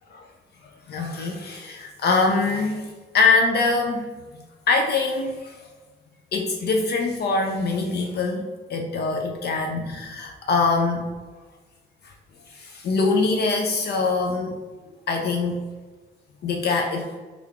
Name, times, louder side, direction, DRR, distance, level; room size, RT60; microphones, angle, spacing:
voice 1, 0.9-4.1 4.7-5.7 6.3-11.0 12.0-12.1 12.5-14.5 15.1-15.6 16.4-17.1, left 3 dB, 55° left, 2 dB, 0.4 m, -23 dB
3.4 x 2.3 x 3.4 m, 1.3 s
cardioid pair, 90°, 20 cm